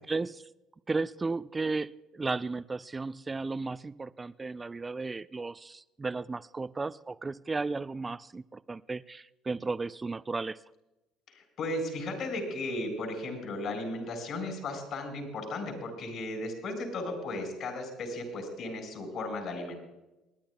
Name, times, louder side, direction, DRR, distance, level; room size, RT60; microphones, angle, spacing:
voice 1, 0.1-0.4 0.9-10.6, right 3 dB, 25° right, 14 dB, 0.4 m, -34 dB
voice 2, 11.3-19.8, left 2 dB, 60° left, 3 dB, 4.3 m, -35 dB
28.0 x 10.0 x 2.3 m, 1.0 s
hypercardioid pair, 70°, 0 cm